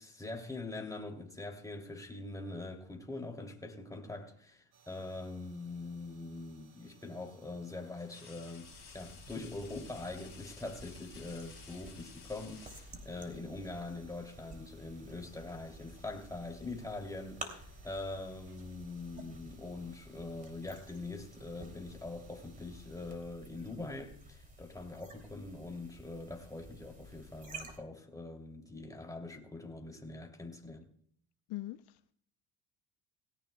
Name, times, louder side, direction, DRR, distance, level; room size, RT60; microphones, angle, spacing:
voice 1, 0.0-30.9, left 2 dB, 10° left, 2.7 m, -43 dB
sound 1, 3.7-4.5 6.3-6.4 8.0-13.4 14.6-14.8 15.2-16.0 16.3-16.6 17.5-20.1, left 7 dB, 30° left, 4.3 m, -57 dB
sound 2, 4.7-23.1, right 5 dB, 85° right, 5.2 m, -65 dB
sound 3, 8.6-27.8, right 1 dB, 20° right, 2.8 m, -52 dB
voice 2, 31.5-32.1, left 16 dB, 65° left, 0.6 m, -42 dB
18.5 x 17.0 x 2.2 m
cardioid pair, 105°, 42 cm